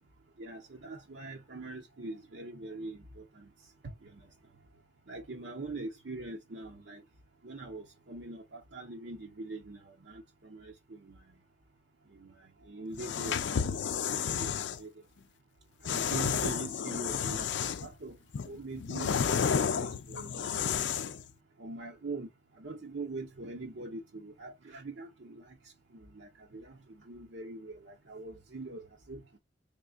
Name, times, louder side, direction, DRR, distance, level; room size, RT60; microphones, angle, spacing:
voice 1, 0.4-3.5 3.8-4.2 5.1-7.0 7.4-11.3 12.1-14.9 15.8-18.2 18.5-20.5 21.6-22.3 22.6-25.6 25.9-29.2, right 2 dB, 70° right, 0.8 m, -43 dB
sound 1, 12.9-14.8 15.8-17.9 18.3-21.2, left 7 dB, 75° left, 0.4 m, -31 dB
3.7 x 3.5 x 2.3 m
head